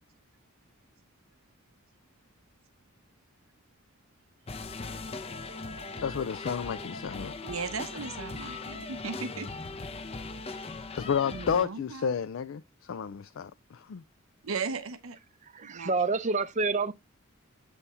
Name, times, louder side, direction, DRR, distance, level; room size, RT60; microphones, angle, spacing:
sound 1, 4.5-11.7, left 3 dB, 30° left, 0.6 m, -39 dB
voice 1, 6.0-7.3 10.9-14.0, left 7 dB, 65° left, 0.4 m, -31 dB
voice 2, 7.4-9.5 11.3-12.1 14.4-15.2 15.6-16.1, right 5 dB, 80° right, 0.7 m, -37 dB
voice 3, 15.5-16.9, right 3 dB, 35° right, 0.5 m, -28 dB
8.3 x 3.5 x 4.1 m
head